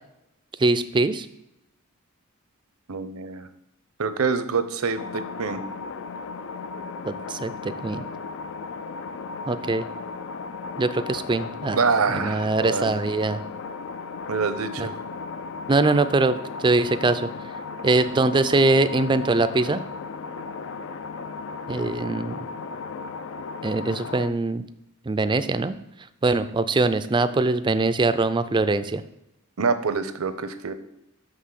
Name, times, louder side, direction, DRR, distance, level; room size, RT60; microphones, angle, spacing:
voice 1, 0.6-1.3 7.0-8.0 9.5-9.9 10.8-11.8 12.1-13.4 14.8-14.9 15.7-17.3 17.8-19.8 21.7-22.4 23.6-24.6 25.1-25.8 26.2-29.0, right 3 dB, 20° right, 11 dB, 0.4 m, -22 dB
voice 2, 2.9-3.5 4.0-5.6 11.7-12.9 14.3-14.9 29.6-30.7, right 5 dB, 75° right, 11 dB, 0.7 m, -26 dB
sound 1, 5.0-24.3, left 4 dB, 60° left, 0.5 m, -35 dB
6.4 x 5.7 x 6.6 m, 0.86 s
head